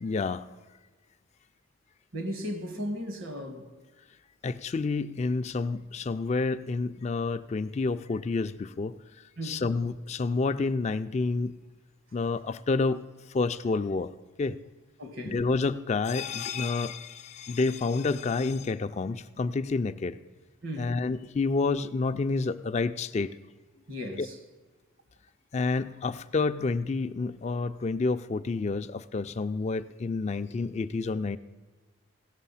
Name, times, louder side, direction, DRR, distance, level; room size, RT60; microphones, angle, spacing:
voice 1, 0.0-0.5 4.4-8.9 9.4-11.6 12.1-13.0 13.3-14.1 14.4-14.6 15.3-20.2 20.8-23.3 24.2-24.3 25.5-31.4, left 3 dB, 30° left, 0.3 m, -29 dB
voice 2, 2.1-3.7 9.4-9.6 15.0-15.5 20.6-21.0 23.9-24.4, equal, 75° right, 1.5 m, -36 dB
16.5 x 6.6 x 5.6 m
head